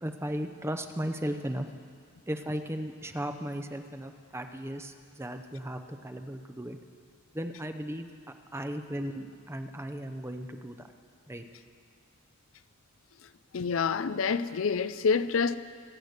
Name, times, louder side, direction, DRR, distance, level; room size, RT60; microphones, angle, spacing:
voice 1, 0.0-1.7 2.3-6.8 7.3-8.1 8.5-10.8 11.3-11.4, equal, 10° right, 0.7 m, -36 dB
voice 2, 13.5-15.6, left 5 dB, 70° left, 0.5 m, -27 dB
24.5 x 8.2 x 6.6 m
head